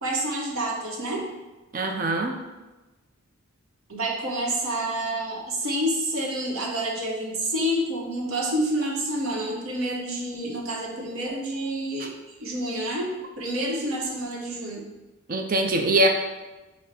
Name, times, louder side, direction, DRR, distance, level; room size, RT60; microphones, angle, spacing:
voice 1, 0.0-1.3 3.9-14.9, right 1 dB, 75° right, -2 dB, 0.9 m, -28 dB
voice 2, 1.7-2.4 15.3-16.1, right 1 dB, 40° right, 3 dB, 0.4 m, -22 dB
5.3 x 2.1 x 4.2 m, 1.1 s
head